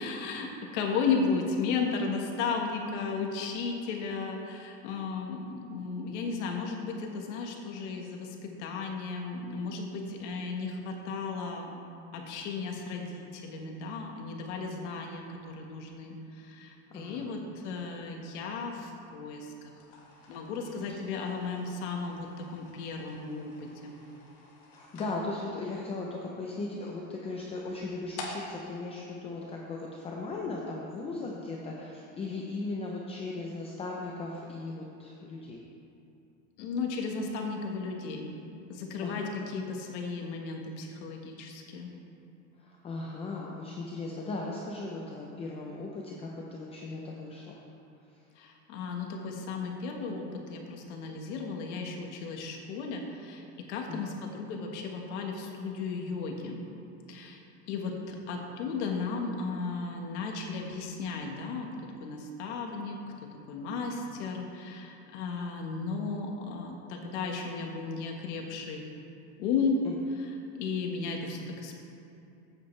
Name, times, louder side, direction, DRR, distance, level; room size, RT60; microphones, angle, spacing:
voice 1, 0.0-11.8 12.1-19.7 20.3-24.0 36.6-38.3 38.7-41.9 48.4-56.6 57.1-57.4 57.7-61.7 62.0-68.9 69.4-69.8 70.6-71.8, left 4 dB, 85° left, 2 dB, 1.5 m, -35 dB
voice 2, 16.9-17.3 20.6-21.0 24.7-35.6 39.0-39.3 42.6-47.6 53.9-54.2 69.8-69.9, left 3 dB, 15° left, -2 dB, 0.6 m, -37 dB
sound 1, 19.7-30.1, left 2 dB, 45° left, 1.7 m, -49 dB
13.5 x 8.7 x 3.3 m, 2.8 s
cardioid pair, 175°, 34 cm